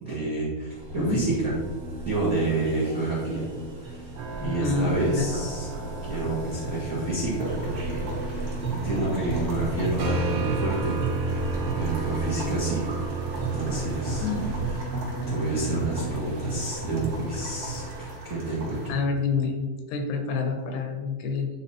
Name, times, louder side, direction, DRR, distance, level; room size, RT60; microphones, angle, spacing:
voice 1, 0.0-1.5 2.0-3.4 3.8-4.1 4.4-5.7 6.0-11.0 11.7-12.9 13.3-14.3 15.3-17.9 18.2-19.0, right 2 dB, 85° right, -7 dB, 0.7 m, -29 dB
sound 1, 0.7-18.1, right 2 dB, 25° right, 1.3 m, -34 dB
sound 2, 4.2-14.7, right 4 dB, 65° right, 2.4 m, -33 dB
voice 2, 4.4-5.3 12.4-12.5 14.2-14.5 16.0-16.1 18.9-21.5, left 4 dB, 90° left, 5 dB, 3.1 m, -28 dB
sound 3, 7.4-18.9, right 1 dB, 45° right, 2.2 m, -44 dB
10.0 x 3.6 x 4.2 m, 1.4 s
omnidirectional pair, 4.5 m